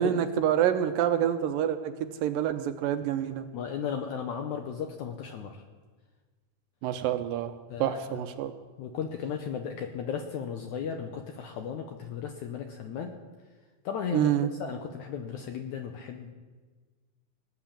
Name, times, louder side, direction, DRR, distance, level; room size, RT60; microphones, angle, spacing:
voice 1, 0.0-3.5 6.8-7.5 7.8-8.5 14.1-14.5, right 10 dB, 75° right, 8 dB, 2.2 m, -27 dB
voice 2, 3.5-5.6 7.7-8.2 8.8-13.2 13.9-16.3, left 7 dB, 75° left, 4 dB, 1.8 m, -35 dB
18.5 x 9.2 x 7.4 m, 1.4 s
omnidirectional pair, 4.3 m